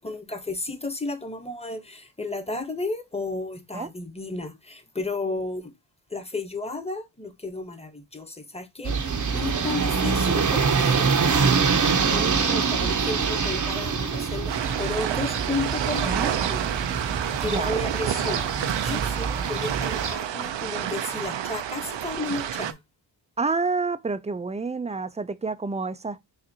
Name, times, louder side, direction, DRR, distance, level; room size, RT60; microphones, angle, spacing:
voice 1, 0.0-5.7 6.1-11.1 12.1-17.1 17.4-22.8, left 3 dB, 15° left, 1.1 m, -33 dB
sound 1, 8.8-20.2, right 5 dB, 40° right, 0.8 m, -25 dB
sound 2, 14.5-22.7, right 10 dB, 75° right, 0.6 m, -29 dB
voice 2, 23.4-26.2, right 4 dB, 15° right, 0.4 m, -28 dB
6.7 x 2.5 x 2.8 m
cardioid pair, 75°, 44 cm